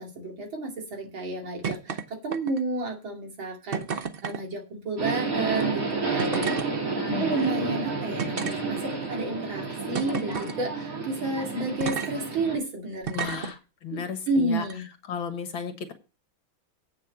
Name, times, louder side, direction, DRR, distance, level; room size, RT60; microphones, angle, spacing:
voice 1, 0.0-5.8 6.1-6.9 7.2-13.5 13.9-14.0 14.3-14.8, right 2 dB, 65° right, 1 dB, 3.3 m, -31 dB
sound 1, 1.6-2.0 2.3-2.8 3.7-4.4 5.5-5.6 6.2-6.7 7.4-7.5 8.2-9.1 9.9-10.6 11.8-12.1 13.0-13.5 14.6-14.7, right 6 dB, 85° right, 0.5 m, -32 dB
Subway metro underground, 5.0-12.6, right 4 dB, 40° right, 3.0 m, -30 dB
voice 2, 7.0-7.3 13.1-14.7 15.1-15.9, left 7 dB, 70° left, 7 dB, 2.2 m, -34 dB
8.5 x 6.4 x 7.6 m, 0.32 s
omnidirectional pair, 2.3 m